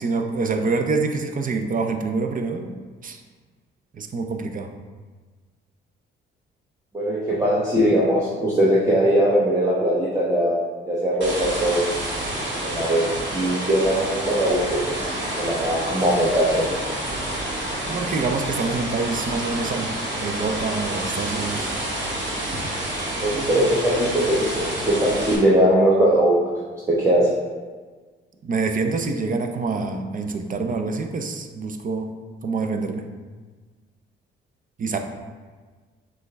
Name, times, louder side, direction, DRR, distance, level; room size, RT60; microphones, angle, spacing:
voice 1, 0.0-2.7 3.0-3.2 3.9-4.7 17.9-19.9 20.2-21.7 28.4-32.1 32.4-33.1 34.8-35.0, right 4 dB, 40° right, 5 dB, 0.5 m, -26 dB
voice 2, 6.9-10.5 10.8-11.8 12.6-14.8 15.4-16.7 23.2-26.4 26.9-27.3, right 1 dB, 15° right, -7 dB, 1.0 m, -20 dB
sound 1, 11.2-25.4, right 1 dB, 60° right, 1.4 m, -29 dB
6.1 x 2.4 x 3.3 m, 1.4 s
cardioid pair, 80°, 21 cm